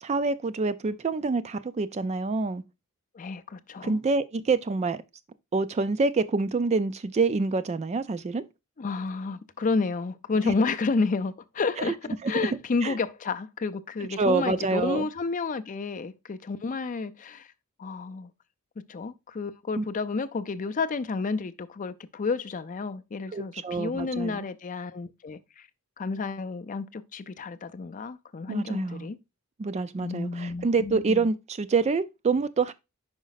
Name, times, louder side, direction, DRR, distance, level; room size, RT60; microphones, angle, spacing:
voice 1, 0.0-2.6 3.8-5.0 5.5-8.4 10.4-10.5 11.8-11.9 12.2-12.3 12.8-13.0 14.2-15.1 19.8-19.9 23.3-24.5 28.5-29.1 29.6-32.7, right 4 dB, 30° right, 0.3 m, -26 dB
voice 2, 3.1-4.0 8.8-17.5 17.8-18.3 18.9-25.7 26.0-29.2 30.0-31.3, left 4 dB, 35° left, 0.4 m, -31 dB
5.2 x 5.0 x 3.9 m
head